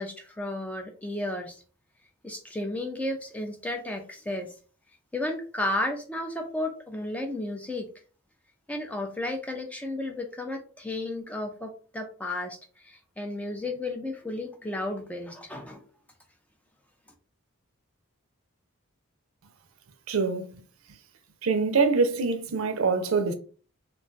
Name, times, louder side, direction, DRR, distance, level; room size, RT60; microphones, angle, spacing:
voice 1, 0.0-1.6 2.2-4.5 5.1-7.9 8.7-15.8, left 1 dB, 5° left, 0.3 m, -33 dB
voice 2, 20.1-20.5 21.4-23.3, right 4 dB, 75° right, 0.5 m, -24 dB
2.4 x 2.3 x 3.8 m
head